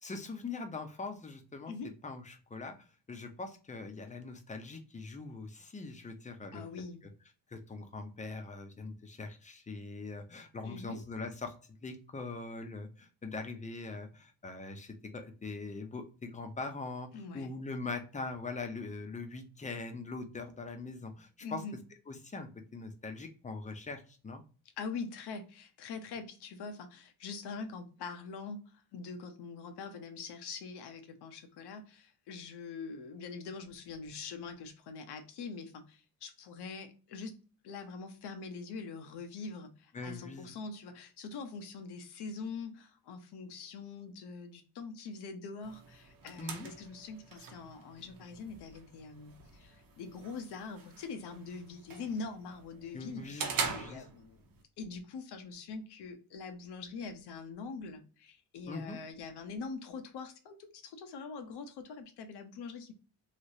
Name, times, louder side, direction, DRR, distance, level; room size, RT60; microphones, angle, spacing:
voice 1, 0.0-1.7 2.0-2.7 3.1-6.6 7.5-11.5 11.8-17.1 17.3-21.6 22.1-24.4 39.9-40.5 46.4-46.7 52.9-54.0 58.7-59.0, left 3 dB, 20° left, 6 dB, 0.6 m, -42 dB
voice 2, 6.5-7.0 10.6-11.0 17.1-17.5 21.4-21.8 24.8-37.4 37.6-54.4 54.8-62.9, left 4 dB, 90° left, 7 dB, 0.8 m, -43 dB
sound 1, 45.6-54.6, right 5 dB, 60° right, 0.8 m, -43 dB
3.2 x 2.8 x 2.6 m, 0.36 s
cardioid pair, 130°, 39 cm